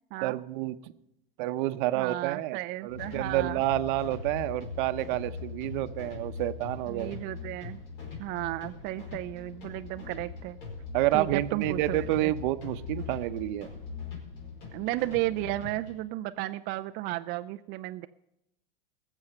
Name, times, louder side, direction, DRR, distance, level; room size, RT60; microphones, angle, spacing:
voice 1, 0.2-0.9 1.4-7.2 10.9-13.7, right 16 dB, 60° right, 12 dB, 0.8 m, -29 dB
voice 2, 1.9-3.6 6.9-7.8 8.2-10.6 11.1-12.3 14.7-18.1, right 16 dB, 35° right, 9 dB, 0.4 m, -34 dB
sound 1, 2.9-16.0, left 5 dB, 60° left, 5.1 m, -41 dB
18.0 x 7.2 x 6.6 m, 0.84 s
supercardioid pair, 120°, 29 cm